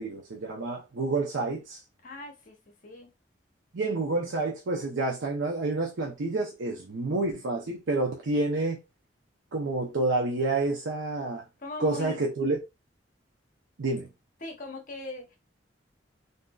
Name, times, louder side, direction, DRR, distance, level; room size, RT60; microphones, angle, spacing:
voice 1, 0.0-1.8 3.7-8.8 9.5-11.4 11.8-12.6 13.8-14.1, right 2 dB, 85° right, 0.6 m, -29 dB
voice 2, 2.0-3.1 11.6-12.2 14.4-15.4, left 2 dB, 45° left, 0.8 m, -40 dB
3.7 x 2.7 x 2.3 m
head